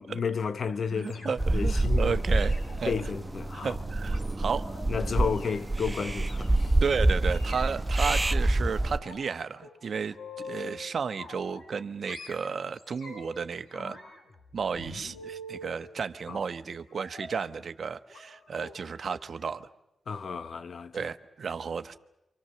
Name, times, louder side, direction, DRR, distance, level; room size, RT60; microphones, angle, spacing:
voice 1, 0.0-2.2 2.8-3.8 4.9-6.8 16.3-16.4 20.1-21.1, left 6 dB, 65° left, 1.0 m, -32 dB
voice 2, 0.9-2.9 3.5-4.7 6.8-14.0 14.5-19.7 20.9-22.0, right 6 dB, 65° right, 1.1 m, -33 dB
sound 1, 1.0-1.6 2.3-4.8 5.2-5.6 6.3-6.6 7.2-8.3 8.7-9.3 9.6-10.8 11.2-11.8 12.1-13.4 13.7-15.8 16.9-17.4 18.1-18.3 18.5-18.7 19.1-19.3 19.6-19.7, left 2 dB, 90° left, 6.7 m, -45 dB
sound 2, 1.4-9.0, right 2 dB, 25° right, 1.0 m, -27 dB
28.0 x 25.5 x 6.9 m
cardioid pair, 50°, 0 cm